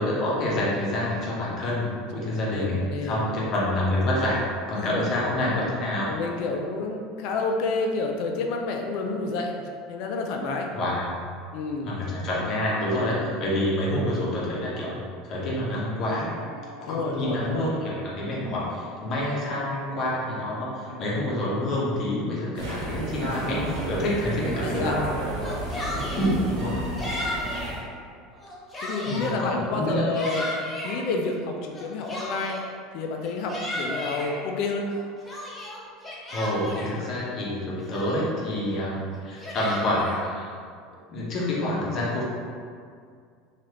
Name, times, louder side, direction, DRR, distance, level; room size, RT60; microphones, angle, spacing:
voice 1, 0.0-4.4 4.7-6.1 10.7-11.2 11.8-16.3 16.8-25.0 26.2-26.8 29.1-30.1 36.3-40.5 41.1-42.2, left 1 dB, 45° left, -5 dB, 0.9 m, -27 dB
voice 2, 2.5-3.2 4.8-5.0 6.1-9.5 9.9-10.7 11.5-11.9 16.9-17.6 24.6-25.0 26.6-27.0 28.8-30.5 30.8-32.6 32.9-34.9, left 3 dB, 65° left, 2 dB, 0.4 m, -29 dB
sound 1, 15.7-21.3, right 2 dB, 60° right, 0.8 m, -45 dB
sound 2, 22.5-27.8, right 1 dB, 80° right, 1.0 m, -31 dB
Yell, 25.3-26.3 27.0-27.8 28.3-29.4 29.9-31.0 31.7-32.7 33.2-34.3 34.9-36.9 37.5-37.6 37.9-38.4 39.1-40.2, left 1 dB, 15° left, 0.6 m, -34 dB
3.0 x 2.4 x 2.9 m, 2.2 s
supercardioid pair, 120°, 0 cm